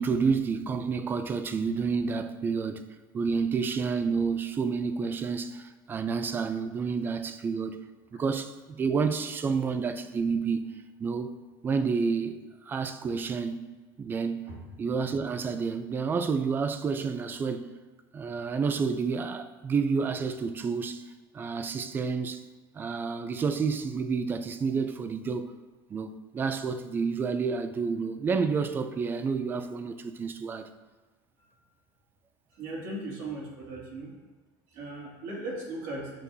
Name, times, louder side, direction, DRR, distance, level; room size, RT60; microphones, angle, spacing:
voice 1, 0.0-2.8 3.1-7.8 8.1-10.7 11.0-11.3 11.6-13.6 14.0-14.5 14.8-17.7 18.1-21.1 21.3-22.4 22.7-25.6 25.9-30.7, right 5 dB, 20° right, 0.4 m, -29 dB
voice 2, 32.6-34.1 34.7-36.2, right 2 dB, 60° right, 2.4 m, -37 dB
9.0 x 6.5 x 2.7 m
cardioid pair, 150°, 10 cm